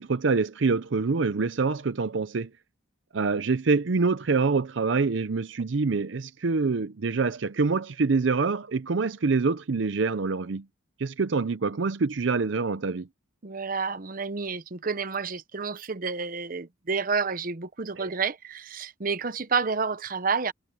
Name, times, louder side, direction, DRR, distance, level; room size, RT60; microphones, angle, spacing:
voice 1, 0.0-2.5 3.1-10.6 11.0-13.1 18.0-18.1, right 4 dB, 70° right, 0.6 m, -25 dB
voice 2, 13.4-20.5, right 5 dB, 45° right, 0.8 m, -29 dB
head